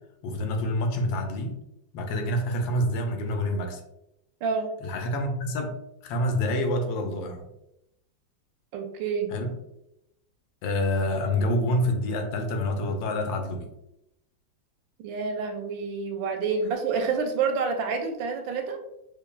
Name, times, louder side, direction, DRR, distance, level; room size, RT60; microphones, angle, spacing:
voice 1, 0.2-1.6 1.9-3.8 4.8-5.7 6.0-7.5 9.3-9.5 10.6-13.7, left 1 dB, 85° left, 4 dB, 1.4 m, -27 dB
voice 2, 8.7-9.3 15.0-18.8, right 5 dB, 85° right, 5 dB, 1.3 m, -28 dB
4.9 x 2.6 x 2.2 m, 0.85 s
omnidirectional pair, 2.0 m